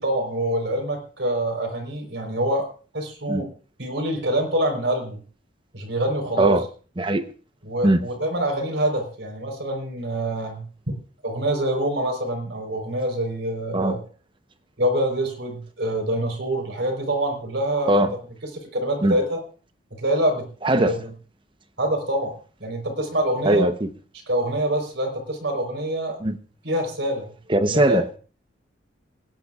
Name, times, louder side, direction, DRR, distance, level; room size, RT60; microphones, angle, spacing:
voice 1, 0.0-3.5 3.8-5.2 5.7-6.6 7.6-10.6 11.2-14.0 14.8-18.1 18.5-19.4 19.9-20.5 20.8-21.1 21.8-22.3 22.6-23.7 24.3-26.2 26.6-27.3 27.6-28.0, right 1 dB, 70° right, 4 dB, 4.1 m, -25 dB
voice 2, 20.6-21.0 23.4-23.7 26.2-26.4 27.5-28.2, right 1 dB, 25° right, 10 dB, 0.9 m, -19 dB
26.5 x 10.5 x 2.4 m, 0.39 s
head